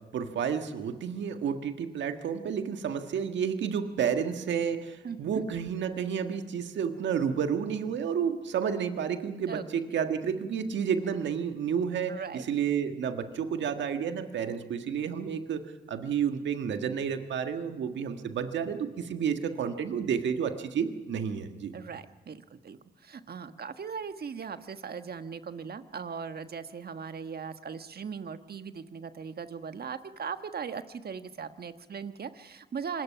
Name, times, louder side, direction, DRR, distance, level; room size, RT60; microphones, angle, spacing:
voice 1, 0.1-15.6 15.9-21.7, right 7 dB, 75° right, 7 dB, 1.6 m, -31 dB
voice 2, 5.0-5.4 9.5-9.7 12.1-12.5 21.7-33.0, right 6 dB, 55° right, 9 dB, 1.4 m, -39 dB
26.0 x 20.5 x 5.8 m, 1.2 s
supercardioid pair, 40°, 19 cm